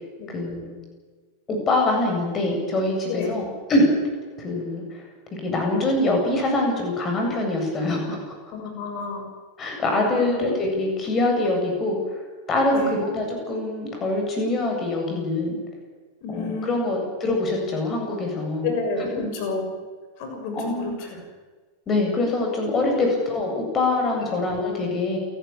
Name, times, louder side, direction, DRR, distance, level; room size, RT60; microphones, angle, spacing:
voice 1, 0.3-0.7 1.5-3.9 4.4-4.8 5.4-8.2 9.6-12.2 12.5-15.6 16.3-18.7 19.1-19.3 20.5-21.1 21.9-25.2, left 2 dB, 25° left, 2 dB, 7.8 m, -24 dB
voice 2, 8.5-9.2 10.1-10.5 12.7-13.0 16.2-17.0 18.6-19.7 20.2-21.2 22.9-23.0 24.2-24.4, left 4 dB, 45° left, 4 dB, 6.8 m, -30 dB
28.0 x 13.0 x 8.9 m, 1.4 s
figure-of-eight pair, 90°, 0 cm